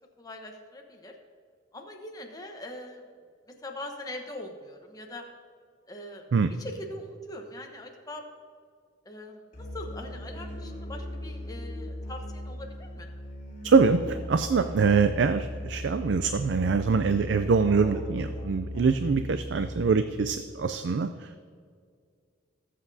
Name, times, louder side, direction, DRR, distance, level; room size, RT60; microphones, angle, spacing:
voice 1, 0.2-1.1 1.7-3.0 3.5-5.2 5.9-6.2 6.6-8.2 9.0-13.1, left 1 dB, 20° left, 2 dB, 1.0 m, -42 dB
Musical instrument, 9.5-20.3, left 1 dB, 40° left, 3.1 m, -38 dB
voice 2, 13.6-21.5, right 5 dB, 65° right, 10 dB, 0.4 m, -24 dB
19.0 x 7.5 x 2.7 m, 2.1 s
head